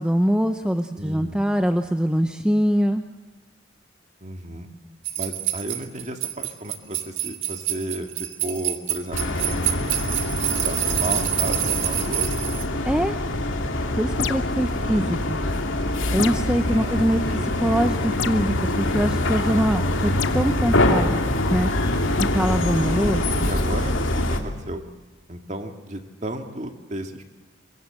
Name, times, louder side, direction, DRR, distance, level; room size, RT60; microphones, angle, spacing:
voice 1, 0.0-3.0 12.8-13.2 13.9-15.4 16.1-17.2 17.6-21.2 21.5-21.7 22.2-23.2, equal, 5° right, 7 dB, 0.7 m, -23 dB
voice 2, 1.0-1.4 4.2-4.7 5.2-9.8 10.6-12.3 14.8-15.2 16.7-17.5 22.6-24.8 25.3-27.2, right 1 dB, 35° right, 5 dB, 2.1 m, -33 dB
sound 1, 5.0-12.6, right 13 dB, 85° right, 1.8 m, -27 dB
sound 2, 9.1-24.4, left 1 dB, 90° left, 2.7 m, -24 dB
sound 3, 14.2-14.6 16.2-16.6 18.2-18.5 20.2-20.4 22.2-22.4, left 7 dB, 75° left, 0.7 m, -29 dB
23.5 x 22.5 x 7.7 m, 1.2 s
head